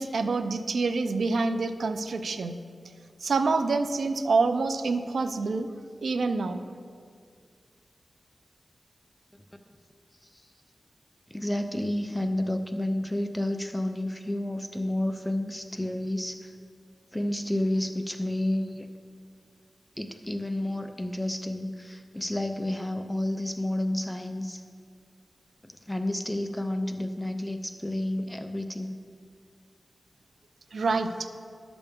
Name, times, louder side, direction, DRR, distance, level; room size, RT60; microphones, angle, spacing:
voice 1, 0.0-2.6 3.2-5.7 6.0-6.6 30.7-31.3, right 3 dB, 80° right, 8 dB, 0.5 m, -27 dB
voice 2, 11.3-16.5 17.1-18.9 20.0-24.6 25.6-29.0, left 1 dB, 10° left, 7 dB, 0.4 m, -30 dB
11.5 x 6.9 x 3.5 m, 2.1 s
wide cardioid pair, 80°, 0 cm